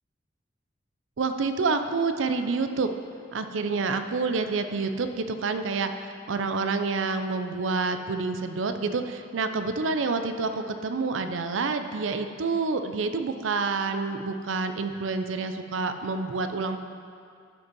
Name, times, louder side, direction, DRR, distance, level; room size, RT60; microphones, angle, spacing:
voice 1, 1.2-2.9 3.3-16.8, right 4 dB, 85° right, 8 dB, 0.5 m, -28 dB
12.0 x 5.3 x 5.3 m, 2.4 s
head